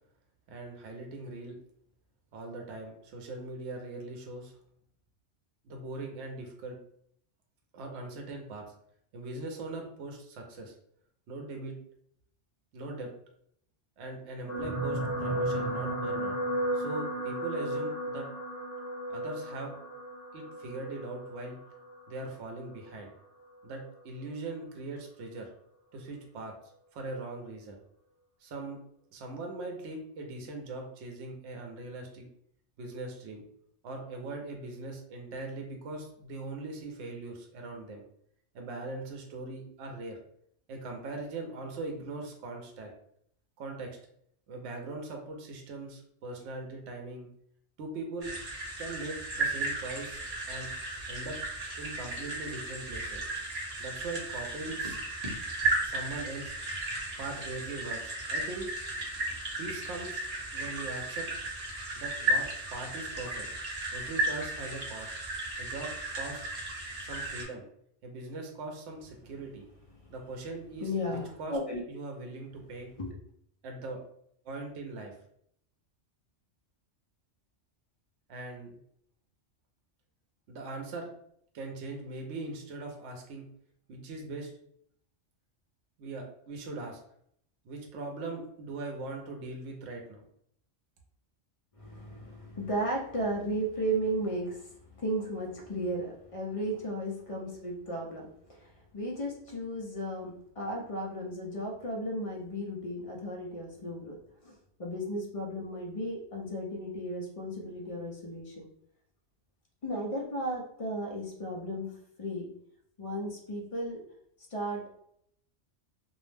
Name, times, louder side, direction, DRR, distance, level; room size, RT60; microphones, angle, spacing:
voice 1, 0.5-1.6 2.3-4.5 5.6-6.8 7.7-8.6 9.1-10.7 11.3-11.7 12.7-13.1 14.0-16.3 16.7-18.3 19.1-19.7 20.3-21.6 22.1-23.1 23.6-25.5 25.9-26.5 26.9-27.8 28.4-28.8 29.1-32.3 32.8-33.4 33.8-38.0 38.5-40.2 40.7-42.9 43.6-43.9 44.5-47.3 47.8-48.3 48.8-50.2 50.5-50.7 51.1-51.4 51.8-53.3 53.8-55.0 55.8-56.6 57.2-58.7 59.6-60.2 60.5-61.3 62.0-63.5 63.9-65.1 65.6-66.4 67.0-67.6 68.0-69.7 70.1-71.6 71.9-72.9 73.6-74.0 74.4-75.1 78.3-78.8 80.5-81.1 81.5-83.4 83.9-84.5 86.0-87.0 87.6-90.2, right 2 dB, 75° right, 3 dB, 0.9 m, -40 dB
sound 1, 14.5-22.9 23.7-23.9 24.2-24.3, right 1 dB, 20° right, 0.3 m, -34 dB
sound 2, 48.2-67.5, right 2 dB, 40° right, 0.7 m, -35 dB
voice 2, 70.8-71.8 73.0-73.1 91.8-104.2 104.4-108.7 109.8-111.9 112.2-112.5 113.0-114.0 114.5-115.0, right 1 dB, 50° left, -1 dB, 0.4 m, -35 dB
2.5 x 2.0 x 3.2 m, 0.69 s
omnidirectional pair, 1.2 m